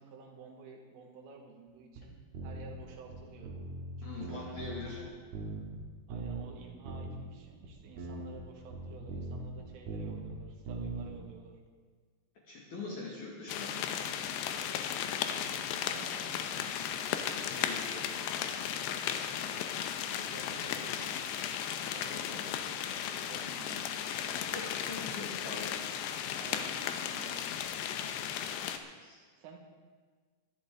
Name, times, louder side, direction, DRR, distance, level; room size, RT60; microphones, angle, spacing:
voice 1, 0.0-3.5 4.0-5.1 6.1-11.6 12.7-13.2 15.1-16.8 19.4-19.7 20.0-21.4 21.8-24.6 26.4-27.6 29.4-29.6, right 4 dB, 80° right, 0 dB, 4.1 m, -52 dB
sound 1, 2.0-2.1 2.3-2.8 3.1-5.1 5.3-5.8 6.1-6.5 6.9-7.1 7.6-7.7 8.0-10.4 10.7-11.2, right 3 dB, 60° right, 3.1 m, -40 dB
voice 2, 4.0-5.0 12.4-13.8 17.5-18.1 22.1-22.5 24.5-25.8 29.0-29.2, left 3 dB, 50° left, -4 dB, 2.7 m, -43 dB
sound 2, 13.5-28.8, left 9 dB, 85° left, 2.4 m, -35 dB
22.0 x 11.0 x 3.8 m, 1.5 s
omnidirectional pair, 5.7 m